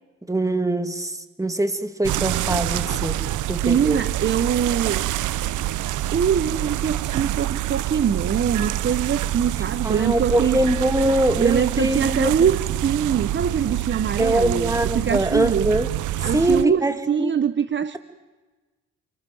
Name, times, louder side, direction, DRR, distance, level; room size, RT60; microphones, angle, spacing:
voice 1, 0.3-4.0 9.8-12.3 14.2-15.9 16.2-17.3, right 1 dB, 10° right, 9 dB, 2.4 m, -23 dB
sound 1, 2.0-16.6, right 13 dB, 80° right, 0.8 m, -26 dB
voice 2, 3.6-5.1 6.1-15.7 16.2-18.0, right 8 dB, 40° right, 14 dB, 0.9 m, -23 dB
28.5 x 24.5 x 7.9 m, 1.3 s
cardioid pair, 90°, 30 cm